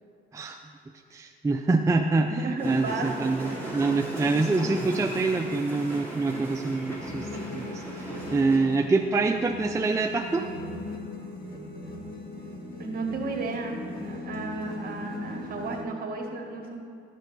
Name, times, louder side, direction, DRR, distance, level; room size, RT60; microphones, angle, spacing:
voice 1, 1.1-10.5, right 3 dB, 15° right, 4 dB, 0.4 m, -26 dB
voice 2, 2.3-3.1 3.4-3.7 12.8-16.8, right 3 dB, 50° right, 1 dB, 1.6 m, -33 dB
sound 1, 2.6-8.6, right 1 dB, 10° left, 2.6 m, -37 dB
sound 2, 6.8-15.8, left 2 dB, 45° left, 1.8 m, -39 dB
11.5 x 6.4 x 4.0 m, 2.2 s
cardioid pair, 90°, 20 cm